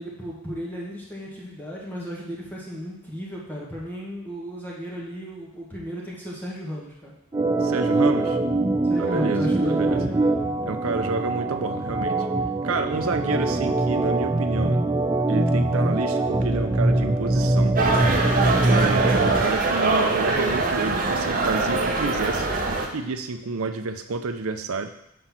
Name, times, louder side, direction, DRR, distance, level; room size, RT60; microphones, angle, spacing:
voice 1, 0.0-7.1 8.8-10.7, equal, 10° left, -5 dB, 1.3 m, -34 dB
Organ, 7.3-19.5, right 2 dB, 15° right, 0.3 m, -23 dB
voice 2, 7.6-8.4 9.0-10.0 10.6-12.3 12.6-14.8 15.3-17.8 18.6-24.9, right 4 dB, 75° right, 8 dB, 0.6 m, -29 dB
sound 1, 17.8-22.9, right 3 dB, 40° right, 0.8 m, -23 dB
5.4 x 4.1 x 5.9 m, 0.78 s
head